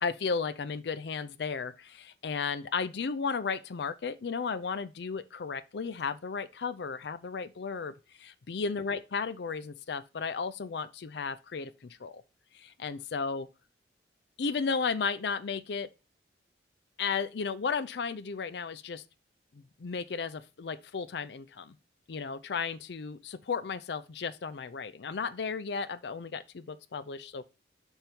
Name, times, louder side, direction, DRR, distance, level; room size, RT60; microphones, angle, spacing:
voice 1, 0.0-12.2 12.5-13.5 14.4-15.9 17.0-19.0 19.5-21.8 22.1-27.5, left 5 dB, 70° left, 0.5 m, -34 dB
5.3 x 4.5 x 4.4 m
head